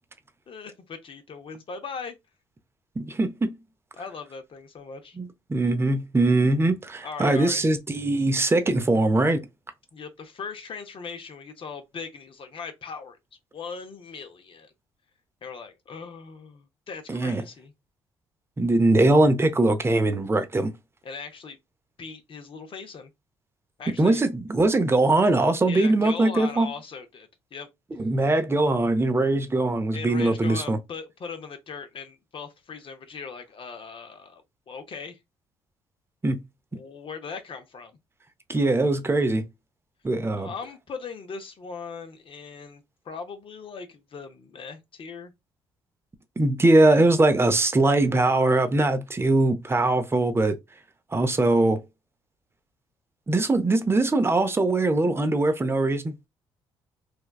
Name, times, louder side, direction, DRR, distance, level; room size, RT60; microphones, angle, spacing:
voice 1, 0.5-2.2 4.0-5.2 7.0-7.7 9.9-13.2 13.5-14.7 15.4-17.7 21.0-21.6 22.0-23.1 23.8-24.2 25.7-27.7 29.9-35.2 36.7-38.0 40.3-45.3, left 5 dB, 50° left, 0.7 m, -39 dB
voice 2, 3.0-3.5 5.2-9.4 17.1-17.4 18.6-20.7 24.0-26.7 28.0-30.8 36.2-36.4 38.5-39.4 40.0-40.5 46.4-50.6 51.1-51.8 53.3-56.1, right 2 dB, 20° right, 0.6 m, -21 dB
3.3 x 2.2 x 2.3 m
hypercardioid pair, 55°, 12 cm